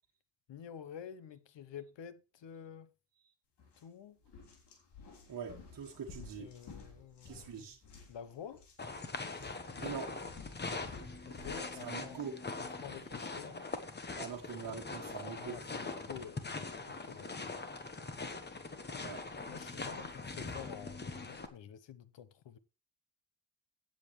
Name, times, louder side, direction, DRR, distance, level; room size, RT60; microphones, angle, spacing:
voice 1, 0.5-2.9 3.8-4.2 6.4-7.5 8.1-8.6 11.2-12.2 12.6-13.6 15.2-17.7 19.5-22.6, left 8 dB, 85° left, 1.0 m, -49 dB
sound 1, 3.6-3.8 4.2-11.7, left 4 dB, 65° left, 3.5 m, -54 dB
voice 2, 5.3-6.9 7.2-7.8 9.8-10.2 11.8-12.4 14.2-15.6 19.0-19.3, right 6 dB, 50° right, 1.6 m, -44 dB
sound 2, 6.2-7.5 8.5-8.7 9.6-11.6 11.8-12.0 12.9-13.7 14.1-14.3 14.9-15.7, left 1 dB, 5° right, 7.9 m, -62 dB
sound 3, 8.8-21.5, left 3 dB, 25° left, 1.2 m, -42 dB
16.0 x 7.8 x 3.2 m
wide cardioid pair, 150°, 42 cm